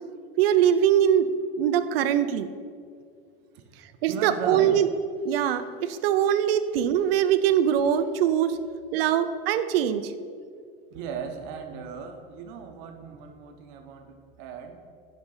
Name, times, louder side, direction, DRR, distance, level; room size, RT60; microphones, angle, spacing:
voice 1, 0.4-1.3 1.6-2.5 4.0-4.9 5.2-8.6 8.9-10.1, right 9 dB, 80° right, 11 dB, 0.6 m, -22 dB
voice 2, 3.5-4.8 10.9-14.8, right 6 dB, 55° right, 5 dB, 1.1 m, -37 dB
9.6 x 5.4 x 5.5 m, 2.2 s
supercardioid pair, 145°, 29 cm